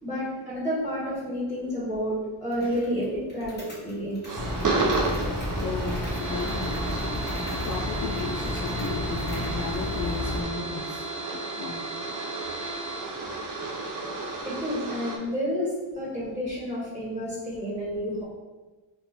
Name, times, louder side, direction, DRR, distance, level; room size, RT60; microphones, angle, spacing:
voice 1, 0.0-4.4 14.4-18.2, equal, 5° right, -8 dB, 1.5 m, -30 dB
sound 1, 2.5-9.6, equal, 20° left, 1.3 m, -47 dB
sound 2, 4.2-15.2, right 3 dB, 40° right, 0.7 m, -32 dB
sound 3, 4.3-10.4, left 1 dB, 80° right, 1.3 m, -31 dB
voice 2, 5.6-6.9 7.1-7.3 7.5-11.8, left 4 dB, 40° left, 0 dB, 0.5 m, -35 dB
4.3 x 2.4 x 3.5 m, 1.2 s
cardioid pair, 75°, 48 cm